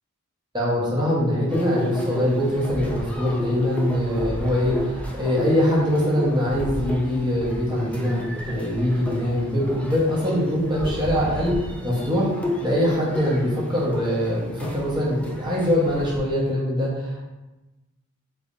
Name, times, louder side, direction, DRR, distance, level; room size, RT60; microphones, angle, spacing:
voice 1, 0.5-17.2, equal, 20° right, -6 dB, 1.0 m, -23 dB
sound 1, 1.5-16.2, left 1 dB, 5° left, 0.4 m, -32 dB
3.3 x 3.2 x 2.5 m, 1.1 s
head